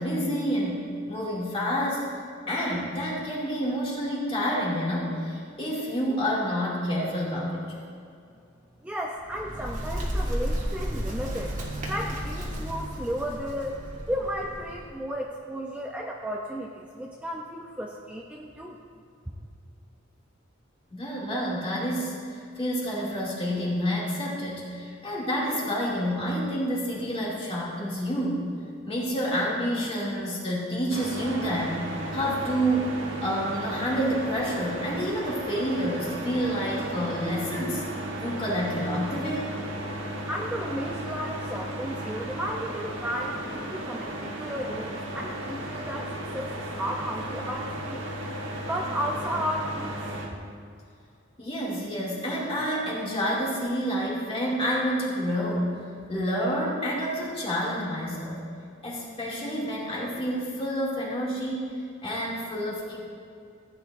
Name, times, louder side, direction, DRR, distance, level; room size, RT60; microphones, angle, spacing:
voice 1, 0.0-2.1 2.5-7.6 20.9-28.5 28.9-31.8 32.1-37.8 38.2-39.5 51.4-55.8 56.1-58.4 58.8-63.0, equal, 30° left, -6 dB, 2.4 m, -28 dB
voice 2, 8.8-11.5 11.9-13.8 14.1-18.8 19.3-19.4 40.3-48.1 48.6-50.0, equal, 5° right, -1 dB, 0.5 m, -33 dB
Bird, 9.1-14.9, equal, 40° right, 1.7 m, -33 dB
sound 1, 30.9-50.3, right 1 dB, 65° right, 1.5 m, -35 dB
15.0 x 9.0 x 2.6 m, 2.4 s
head